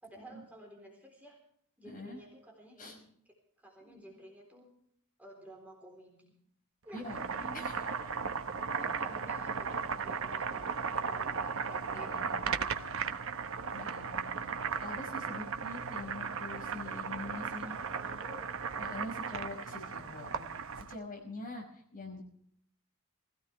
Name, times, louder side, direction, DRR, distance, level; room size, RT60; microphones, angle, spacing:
voice 1, 0.0-1.4 1.8-4.7 5.2-6.3 6.8-7.7 8.7-12.8 16.9-17.0 17.4-19.1, right 1 dB, 5° right, 0 dB, 3.8 m, -53 dB
voice 2, 1.8-2.2 2.8-3.0 3.8-4.0 6.9-7.2 7.5-7.7 11.9-13.1 13.7-17.8 18.8-20.5 20.8-21.6 21.9-22.2, left 2 dB, 40° left, 0 dB, 5.5 m, -44 dB
Boiling, 6.9-21.0, right 5 dB, 65° right, 1.0 m, -36 dB
20.5 x 17.0 x 3.4 m, 0.65 s
head